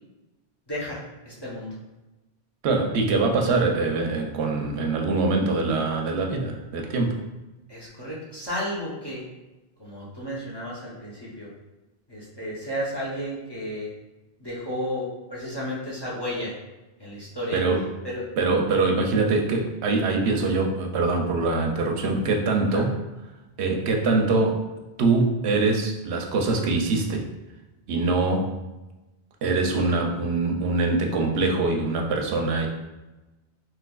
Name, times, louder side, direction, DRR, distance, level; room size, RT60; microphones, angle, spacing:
voice 1, 0.7-1.7 7.7-9.2 9.8-11.5 12.1-13.9 14.4-16.6 17.0-17.6 18.0-18.3 22.7-22.8, equal, 30° left, -7 dB, 0.6 m, -33 dB
voice 2, 2.6-7.2 17.5-17.8 18.4-22.9 23.6-24.6 25.0-27.2 27.9-28.5 29.4-32.7, right 3 dB, 90° right, 2 dB, 0.8 m, -23 dB
3.3 x 2.9 x 2.3 m, 1.1 s
omnidirectional pair, 1.1 m